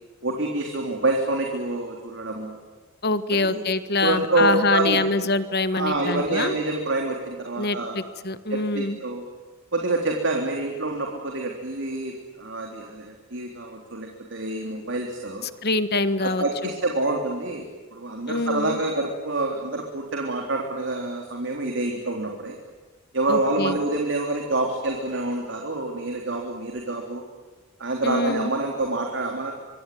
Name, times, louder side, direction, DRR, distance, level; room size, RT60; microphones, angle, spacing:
voice 1, 0.2-2.6 3.4-3.6 4.0-5.0 5.7-8.0 8.5-9.2 9.7-12.1 12.4-15.5 16.2-17.7 17.9-22.6 23.1-27.2 27.8-29.5, right 2 dB, 65° right, 1 dB, 3.5 m, -27 dB
voice 2, 3.0-6.6 7.6-9.0 15.4-16.7 18.3-18.8 23.3-23.8 28.0-28.5, left 3 dB, 50° left, 12 dB, 1.5 m, -25 dB
25.0 x 24.5 x 9.4 m, 1.3 s
head